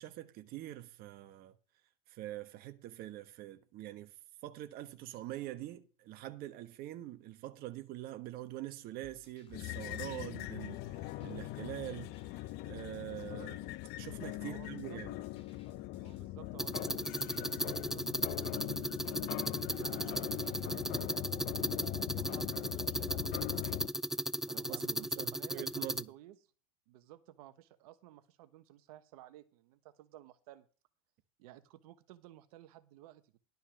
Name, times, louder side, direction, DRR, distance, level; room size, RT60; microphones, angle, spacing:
voice 1, 0.0-1.5 2.1-4.2 4.4-15.1 24.5-26.1, right 14 dB, 55° right, 1.3 m, -45 dB
sound 1, 9.0-23.8, left 8 dB, 30° left, 7.6 m, -61 dB
sound 2, 9.5-23.9, left 17 dB, 60° left, 0.8 m, -41 dB
voice 2, 14.4-15.0 16.0-18.8 19.8-23.8 24.4-26.4 26.9-30.7 31.4-33.4, right 14 dB, 75° right, 1.3 m, -55 dB
sound 3, 16.6-26.0, right 1 dB, ahead, 0.4 m, -36 dB
12.0 x 5.5 x 6.4 m
supercardioid pair, 115°, 19 cm